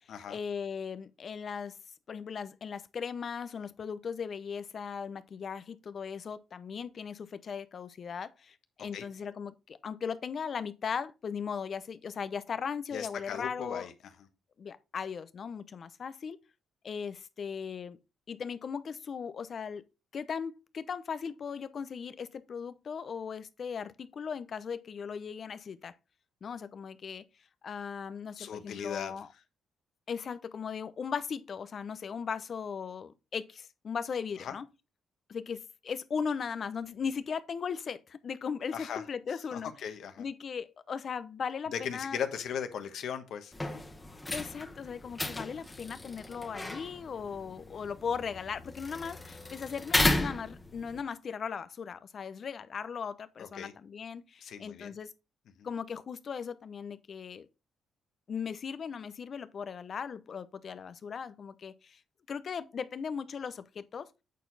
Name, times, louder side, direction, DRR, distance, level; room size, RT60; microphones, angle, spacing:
voice 1, 0.3-1.8 2.1-13.9 14.6-16.4 16.8-18.0 18.3-19.8 20.1-25.9 26.4-27.2 27.6-29.3 30.1-34.6 35.3-39.7 40.2-42.2 44.3-55.1 55.6-57.5 58.3-62.0 62.3-64.1, left 6 dB, 50° left, 0.7 m, -38 dB
voice 2, 12.9-13.9 28.4-29.1 34.4-34.5 38.7-39.0 39.5-40.2 41.7-43.7 53.4-53.7 54.4-54.9 55.6-55.7, left 8 dB, 70° left, 1.2 m, -38 dB
sound 1, 43.5-51.0, left 2 dB, 15° left, 1.4 m, -34 dB
8.2 x 4.5 x 4.0 m
cardioid pair, 90°, 0 cm